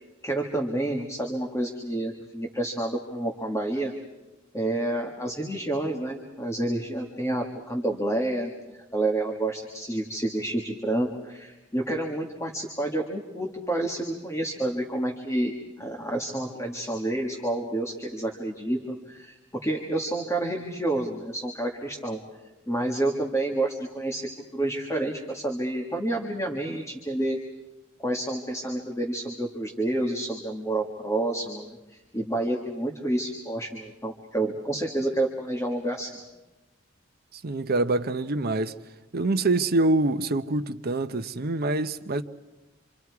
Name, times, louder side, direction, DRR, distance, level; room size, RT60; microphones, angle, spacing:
voice 1, 0.2-3.9 4.5-15.5 15.8-19.4 19.6-22.2 22.7-27.4 28.0-36.1, right 1 dB, 15° left, 1.8 m, -29 dB
voice 2, 37.3-38.8 39.1-42.2, right 2 dB, 50° right, 0.8 m, -25 dB
27.5 x 27.0 x 4.8 m
head